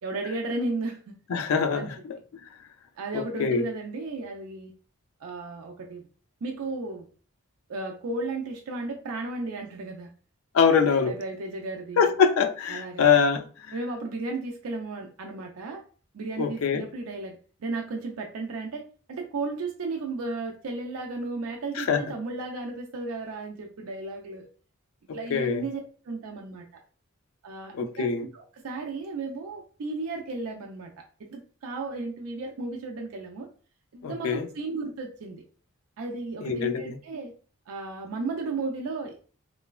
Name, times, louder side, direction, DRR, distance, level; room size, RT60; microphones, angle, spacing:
voice 1, 0.0-1.2 1.7-1.9 3.0-4.7 5.2-6.1 6.4-7.1 7.7-10.1 10.7-12.1 12.7-13.0 13.7-15.8 16.1-18.8 19.1-24.5 25.1-26.6 27.4-28.1 28.3-30.9 31.2-33.5 33.9-35.4 36.0-37.3 37.7-39.2, right 3 dB, 80° right, 0.4 m, -34 dB
voice 2, 1.3-2.2 3.1-3.6 10.5-11.2 12.0-13.7 16.4-16.8 21.8-22.0 25.3-25.6 27.7-28.3 34.0-34.5 36.4-37.0, left 6 dB, 75° left, 0.4 m, -24 dB
3.1 x 2.2 x 2.2 m
head